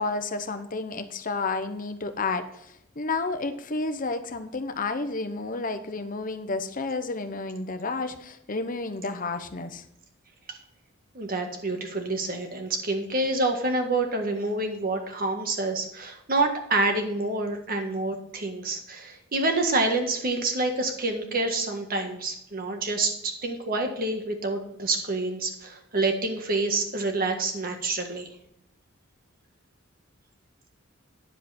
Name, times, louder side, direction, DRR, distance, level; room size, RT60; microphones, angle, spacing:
voice 1, 0.0-9.8, left 3 dB, 40° left, 8 dB, 0.9 m, -31 dB
voice 2, 11.1-28.3, right 2 dB, 45° right, 4 dB, 1.7 m, -27 dB
10.0 x 7.4 x 4.3 m, 0.78 s
head